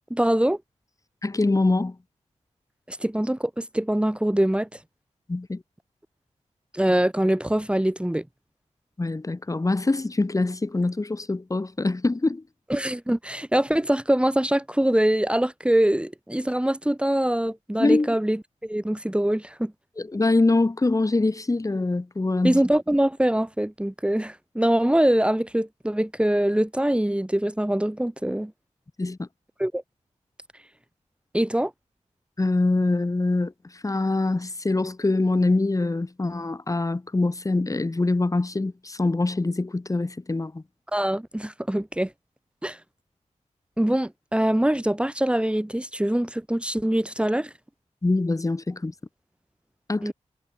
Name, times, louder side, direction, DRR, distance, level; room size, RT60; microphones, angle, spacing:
voice 1, 0.1-0.6 2.9-4.7 6.7-8.2 12.7-19.7 22.4-28.5 29.6-29.8 31.3-31.7 40.9-42.1 42.6-42.8 43.8-47.5 50.0-50.1, right 1 dB, 10° right, 4.9 m, -23 dB
voice 2, 1.2-2.0 5.3-5.6 9.0-12.4 17.8-18.1 20.0-22.6 29.0-29.3 32.4-33.5 33.8-40.6 48.0-48.9 49.9-50.1, left 2 dB, 25° left, 1.9 m, -24 dB
wide cardioid pair, 90°, 13 cm